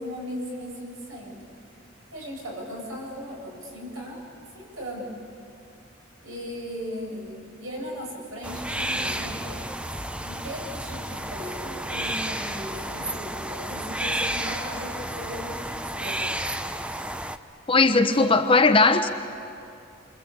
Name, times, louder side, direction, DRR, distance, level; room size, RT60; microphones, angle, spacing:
voice 1, 0.0-1.5 2.1-4.2 4.5-5.1 6.2-9.6 10.2-16.5 18.1-18.4, equal, 80° right, -1 dB, 7.9 m, -37 dB
sound 1, 8.4-17.4, right 1 dB, 5° right, 0.7 m, -31 dB
voice 2, 17.7-19.1, left 3 dB, 25° left, 7 dB, 1.0 m, -18 dB
27.0 x 25.0 x 8.7 m, 2.5 s
head